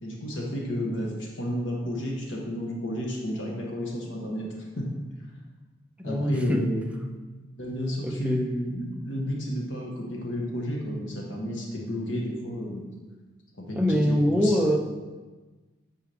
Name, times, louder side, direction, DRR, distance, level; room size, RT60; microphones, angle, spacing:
voice 1, 0.0-4.9 6.0-6.9 7.6-12.8 13.6-13.8 14.1-14.6, equal, 75° left, -2 dB, 1.4 m, -31 dB
voice 2, 6.0-7.0 7.7-8.5 13.8-14.8, equal, 5° right, 2 dB, 0.6 m, -25 dB
8.1 x 4.7 x 3.5 m, 1.3 s
head